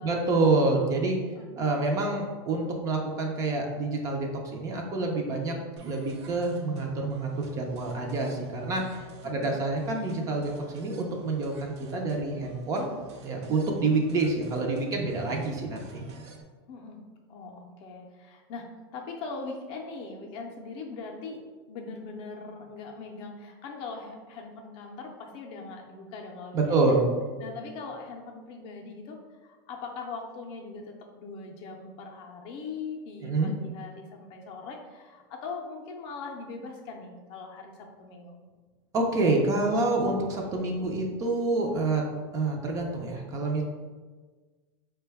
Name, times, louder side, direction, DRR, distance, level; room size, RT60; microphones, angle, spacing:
voice 1, 0.0-1.2 1.6-5.5 5.8-12.9 13.2-16.1 26.5-27.1 33.2-33.5 38.9-42.0 42.3-43.6, right 3 dB, 25° right, 1 dB, 0.4 m, -27 dB
sound 1, 5.8-16.4, equal, 90° right, 0.6 m, -48 dB
voice 2, 9.2-9.7 16.7-17.0 17.3-21.4 21.7-26.9 27.4-38.4, left 4 dB, 40° left, 2 dB, 0.5 m, -41 dB
4.5 x 2.2 x 3.3 m, 1.4 s
supercardioid pair, 155°, 14 cm